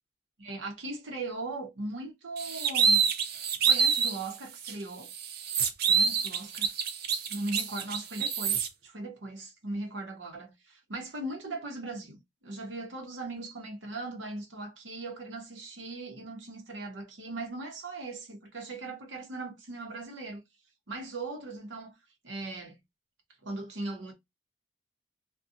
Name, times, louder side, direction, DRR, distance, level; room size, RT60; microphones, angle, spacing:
voice 1, 0.4-3.0 3.6-5.1 5.9-6.7 7.3-20.4 20.9-21.9 22.2-22.8 23.4-24.1, right 2 dB, 90° right, 0.9 m, -39 dB
sound 1, 2.4-4.2 4.6-4.7 5.1-8.7, right 6 dB, 55° right, 0.5 m, -26 dB
2.6 x 2.2 x 2.5 m
head